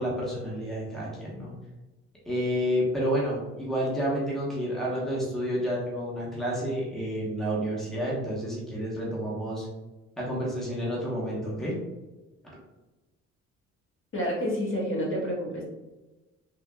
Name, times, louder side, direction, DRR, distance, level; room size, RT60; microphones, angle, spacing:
voice 1, 0.0-1.5 2.3-9.7 10.2-11.8, equal, ahead, -6 dB, 0.9 m, -30 dB
voice 2, 14.1-15.6, equal, 40° left, -5 dB, 1.2 m, -29 dB
3.6 x 2.3 x 2.2 m, 1.1 s
cardioid pair, 90°, 30 cm